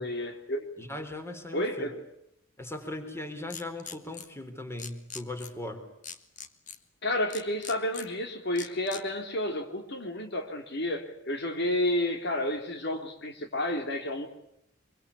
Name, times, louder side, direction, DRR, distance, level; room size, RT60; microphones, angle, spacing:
voice 1, 0.0-0.7 1.5-2.0 7.0-14.3, left 1 dB, 55° left, 3.2 m, -31 dB
voice 2, 0.8-1.9 2.6-5.8, left 1 dB, 10° left, 3.8 m, -38 dB
sound 1, 3.5-4.3 4.8-5.5 6.0-6.8 7.3-8.1 8.6-9.0, left 7 dB, 40° left, 1.9 m, -41 dB
25.0 x 24.0 x 8.5 m
head